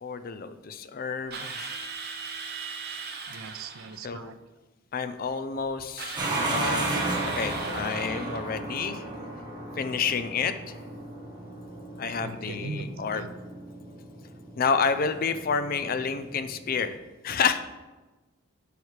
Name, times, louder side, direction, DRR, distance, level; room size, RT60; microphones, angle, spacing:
voice 1, 0.0-1.8 4.0-4.4 4.9-6.2 6.5-6.9 7.2-9.0 9.8-10.8 12.0-13.3 14.6-17.0 17.2-17.6, left 5 dB, 45° left, 10 dB, 0.4 m, -29 dB
Drill, 1.3-4.0 6.0-8.5, right 5 dB, 50° right, 0.9 m, -38 dB
voice 2, 3.3-4.4 12.2-13.3, right 3 dB, 75° right, 11 dB, 0.5 m, -39 dB
sound 1, 6.2-16.9, right 2 dB, 20° right, 1.2 m, -34 dB
11.5 x 4.8 x 3.3 m, 1.2 s
head